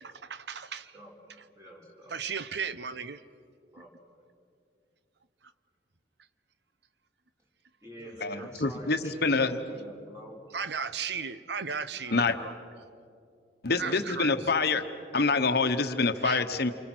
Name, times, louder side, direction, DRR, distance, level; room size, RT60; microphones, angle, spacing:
voice 1, 0.0-0.9 2.1-3.2 8.0-8.1 8.4-8.5 10.5-12.5 13.8-14.4 16.2-16.4, right 6 dB, 60° right, 13 dB, 0.9 m, -36 dB
voice 2, 1.5-2.2 3.7-4.1 7.8-10.4 12.0-12.5 13.6-14.5, right 1 dB, 15° right, -2 dB, 4.4 m, -46 dB
voice 3, 8.2-9.6 12.1-12.3 13.6-14.8 15.1-16.7, left 4 dB, 60° left, 9 dB, 1.1 m, -26 dB
28.5 x 24.5 x 6.2 m, 2.4 s
head